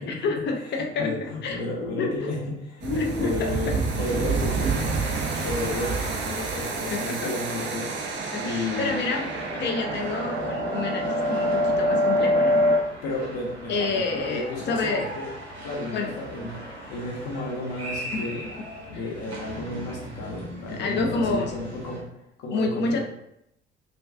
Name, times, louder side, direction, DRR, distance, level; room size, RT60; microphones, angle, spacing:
voice 1, 0.0-1.6 2.0-2.1 2.8-3.8 6.9-7.3 8.3-9.3 9.6-12.6 13.7-15.1 15.9-16.1 18.1-18.3 18.9-19.0 20.7-21.5 22.5-23.0, left 4 dB, 35° left, 3 dB, 0.5 m, -28 dB
voice 2, 0.6-7.9 8.4-9.3 13.0-15.3 15.6-18.4 18.9-22.0 22.4-23.0, left 2 dB, 50° left, -3 dB, 0.8 m, -32 dB
sound 1, 2.8-12.8, right 1 dB, 35° right, 0.5 m, -26 dB
sound 2, 3.0-22.0, right 1 dB, 90° right, 0.6 m, -40 dB
2.4 x 2.2 x 2.4 m, 0.78 s
figure-of-eight pair, 50°, 32 cm